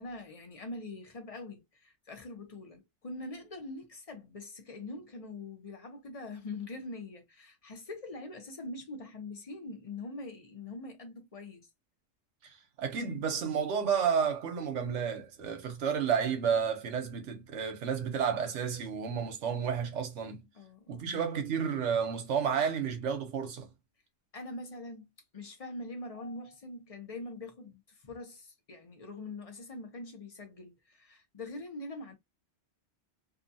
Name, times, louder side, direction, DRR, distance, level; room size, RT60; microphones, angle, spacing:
voice 1, 0.0-11.7 20.5-21.1 24.3-32.1, left 2 dB, 35° left, 0.8 m, -43 dB
voice 2, 12.8-20.5 20.9-23.7, right 7 dB, 75° right, 1.1 m, -31 dB
2.7 x 2.3 x 2.6 m
omnidirectional pair, 1.2 m